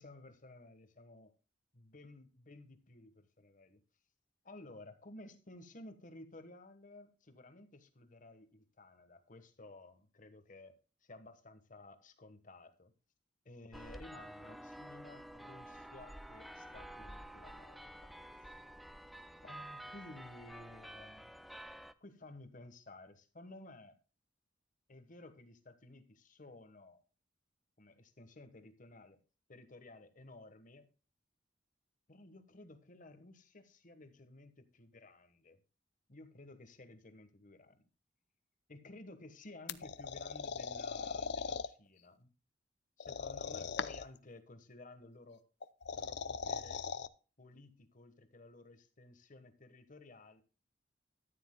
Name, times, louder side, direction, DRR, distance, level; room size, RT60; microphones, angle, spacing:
voice 1, 0.0-1.3 1.7-3.8 4.4-10.8 11.0-12.9 13.4-18.1 19.4-21.3 22.0-24.0 24.9-27.0 27.8-29.2 29.5-30.9 32.1-35.6 36.1-37.8 38.7-42.3 43.0-45.4 45.9-46.8 47.4-50.4, left 2 dB, 45° left, 9 dB, 1.3 m, -55 dB
sound 1, 13.7-21.9, right 1 dB, ahead, 0.5 m, -50 dB
sound 2, 39.7-41.7 43.0-44.2 45.6-47.1, left 5 dB, 70° left, 0.6 m, -40 dB
13.5 x 10.0 x 2.2 m, 0.34 s
head